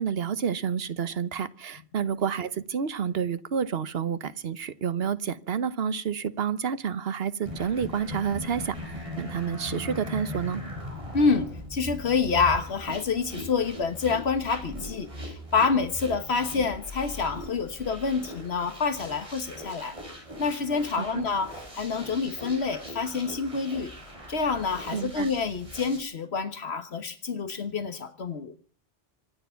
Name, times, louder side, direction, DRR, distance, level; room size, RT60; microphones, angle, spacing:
voice 1, 0.0-10.6 21.0-21.2 24.9-25.3, right 7 dB, 75° right, 15 dB, 1.2 m, -29 dB
sound 1, 7.4-26.0, left 1 dB, 30° right, 5.7 m, -40 dB
voice 2, 11.1-19.9 20.4-23.9 24.3-28.5, left 5 dB, 85° left, 10 dB, 1.6 m, -27 dB
25.5 x 9.5 x 5.7 m, 0.42 s
omnidirectional pair, 1.1 m